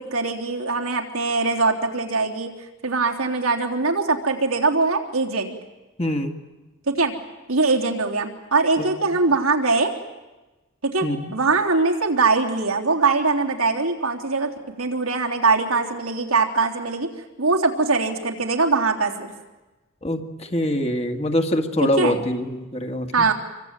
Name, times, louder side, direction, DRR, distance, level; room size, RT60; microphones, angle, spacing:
voice 1, 0.0-2.5 2.8-5.6 6.9-7.1 7.5-9.9 10.8-17.1 17.4-19.3 21.8-22.2 23.1-23.3, right 3 dB, 90° right, 1 dB, 3.5 m, -22 dB
voice 2, 6.0-6.3 8.8-9.2 11.0-11.3 20.0-23.3, left 1 dB, 30° left, 4 dB, 2.0 m, -24 dB
27.0 x 24.5 x 9.1 m, 1.1 s
head